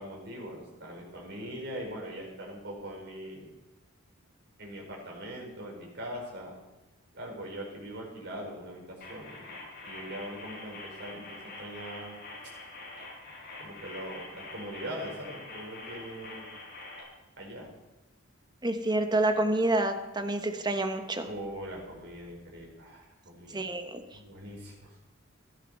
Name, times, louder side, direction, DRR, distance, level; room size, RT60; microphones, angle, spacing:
voice 1, 0.0-3.5 4.6-6.6 7.1-12.2 13.6-16.5 17.4-17.7 21.3-23.7 24.2-25.0, equal, 55° right, -1 dB, 4.7 m, -41 dB
sound 1, 9.0-17.0, left 2 dB, 45° left, 5.2 m, -45 dB
voice 2, 18.6-21.3 23.5-24.0, right 2 dB, 20° right, 7 dB, 1.1 m, -28 dB
15.0 x 13.0 x 5.5 m, 1.0 s
head